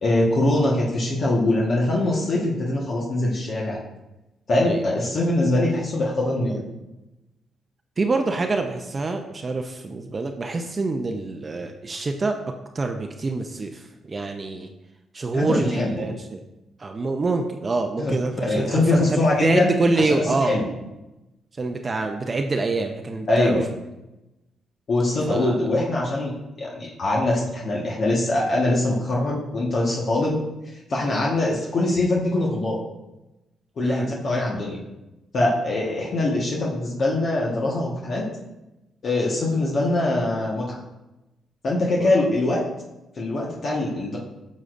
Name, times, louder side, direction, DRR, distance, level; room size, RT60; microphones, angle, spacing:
voice 1, 0.0-3.8 4.5-6.6 15.3-16.1 18.0-18.2 18.5-20.7 23.3-23.7 24.9-30.4 30.9-32.8 33.8-34.8 35.3-38.2 39.0-40.8 41.6-42.6 43.2-44.2, left 2 dB, 55° left, -4 dB, 1.4 m, -23 dB
voice 2, 8.0-12.4 12.7-14.7 15.1-16.4 16.8-20.6 21.6-23.6 25.3-25.6 33.8-34.1 42.0-42.3, right 3 dB, 35° right, 4 dB, 0.6 m, -26 dB
9.5 x 6.3 x 2.6 m, 0.98 s
cardioid pair, 75°, 0 cm